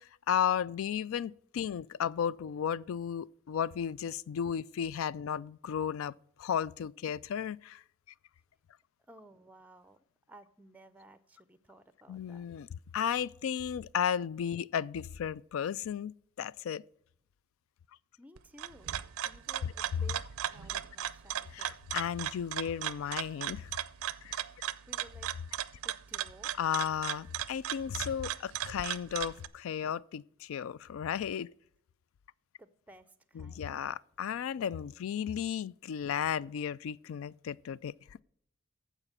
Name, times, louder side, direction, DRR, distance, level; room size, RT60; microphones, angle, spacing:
voice 1, 0.0-7.8 12.1-12.7 12.9-16.8 21.5-23.7 24.2-24.4 26.6-31.5 33.4-37.9, left 8 dB, 70° left, 0.3 m, -34 dB
voice 2, 9.0-10.0 10.3-12.5 18.2-18.9 19.2-20.2 20.5-21.8 24.7-25.3 25.8-26.5 32.6-33.7, right 1 dB, 5° right, 0.5 m, -56 dB
sound 1, 18.4-29.5, right 11 dB, 85° right, 0.5 m, -37 dB
14.5 x 5.0 x 6.7 m
head